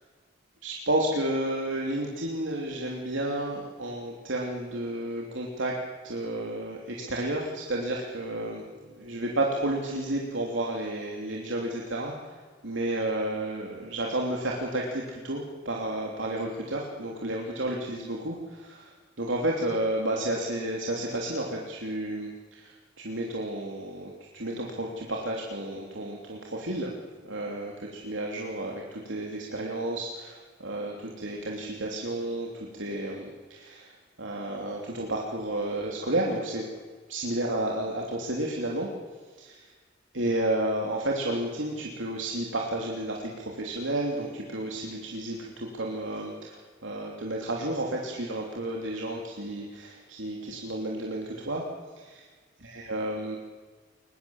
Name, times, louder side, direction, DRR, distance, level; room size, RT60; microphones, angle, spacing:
voice 1, 0.6-5.8 6.0-12.3 12.6-18.9 19.2-26.9 27.2-32.5 32.8-33.9 34.2-36.7 37.1-38.9 39.4-39.7 40.1-51.6 52.0-52.3 52.6-53.4, right 1 dB, 90° right, -1 dB, 3.2 m, -31 dB
23.0 x 21.0 x 7.3 m, 1.5 s
head